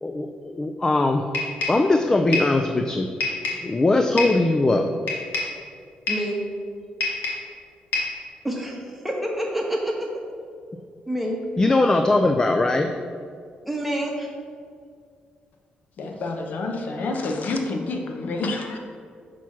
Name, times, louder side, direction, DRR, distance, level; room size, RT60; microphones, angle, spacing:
voice 1, 0.0-1.2 1.7-3.1 3.6-4.9 11.6-12.9, left 2 dB, 20° left, 5 dB, 0.3 m, -20 dB
sound 1, 1.3-1.9 2.3-2.6 3.2-3.7 4.2-4.5 5.1-5.6 6.1-6.3 7.0-7.5 7.9-8.2, left 3 dB, 90° left, 1.3 m, -27 dB
voice 2, 6.1-6.4 8.4-10.0 11.1-11.4 13.7-14.3, right 1 dB, 5° right, -1 dB, 1.1 m, -27 dB
voice 3, 16.0-18.8, left 3 dB, 60° left, 2 dB, 0.7 m, -28 dB
6.0 x 3.0 x 5.7 m, 2.1 s
cardioid pair, 100°, 3 cm